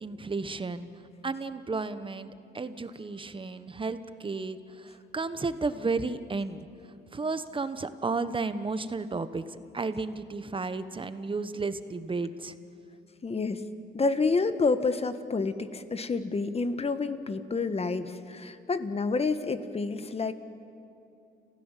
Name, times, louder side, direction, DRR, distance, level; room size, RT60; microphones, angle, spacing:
voice 1, 0.0-0.9 1.2-6.7 7.1-12.5, right 3 dB, 25° right, 12 dB, 1.2 m, -33 dB
voice 2, 13.2-13.6 13.9-20.3, left 4 dB, 30° left, 11 dB, 1.4 m, -28 dB
30.0 x 16.0 x 7.5 m, 2.7 s
cardioid pair, 90°, 20 cm